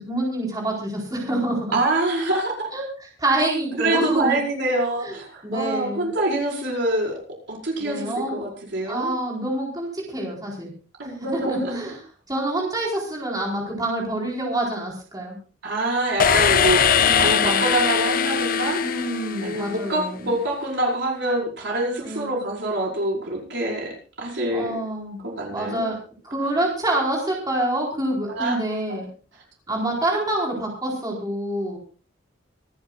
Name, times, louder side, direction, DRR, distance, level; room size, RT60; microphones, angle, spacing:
voice 1, 0.0-1.7 2.7-2.8 3.2-4.4 5.0-5.2 5.4-6.1 7.8-8.4 8.9-10.7 11.0-12.0 12.3-15.4 17.0-17.6 18.8-20.2 22.0-22.4 24.5-25.2 25.5-26.0 26.2-29.0 29.7-31.8, right 1 dB, 20° right, -2 dB, 4.3 m, -27 dB
voice 2, 1.7-2.5 3.8-7.1 7.5-9.1 11.0-11.9 15.6-16.8 17.2-18.8 19.4-24.8 25.2-25.9 26.4-26.6 28.3-28.6 28.9-29.0, right 1 dB, 65° right, -1 dB, 5.3 m, -25 dB
sound 1, 16.2-20.0, left 7 dB, 45° left, 0.7 m, -21 dB
26.0 x 11.5 x 2.4 m, 0.39 s
head